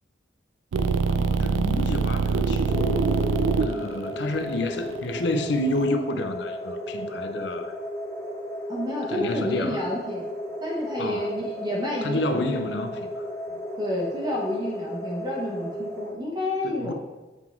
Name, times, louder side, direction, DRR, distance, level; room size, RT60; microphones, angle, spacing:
sound 1, 0.7-5.9, right 4 dB, 90° right, 0.4 m, -24 dB
voice 1, 1.1-3.1 3.6-7.7 9.1-9.9 11.0-11.4 12.0-13.2 16.6-16.9, left 2 dB, 65° left, 8 dB, 0.6 m, -29 dB
sound 2, 2.7-16.1, left 1 dB, 15° left, 1.3 m, -34 dB
voice 2, 8.7-10.2 10.6-12.6 13.8-16.9, left 1 dB, 20° right, -4 dB, 1.1 m, -30 dB
7.9 x 3.9 x 4.5 m, 1.1 s
head